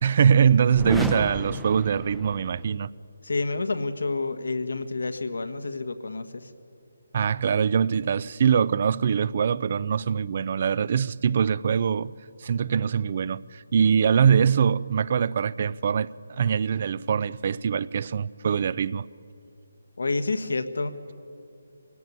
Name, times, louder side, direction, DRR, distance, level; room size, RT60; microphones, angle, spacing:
voice 1, 0.0-2.9 7.1-12.1 12.4-19.1, right 7 dB, 45° right, 0.5 m, -23 dB
sound 1, 0.7-2.7, right 1 dB, ahead, 0.7 m, -34 dB
voice 2, 3.2-6.5 20.0-21.1, left 3 dB, 75° left, 1.5 m, -29 dB
23.5 x 17.0 x 9.5 m
figure-of-eight pair, 155°, 0 cm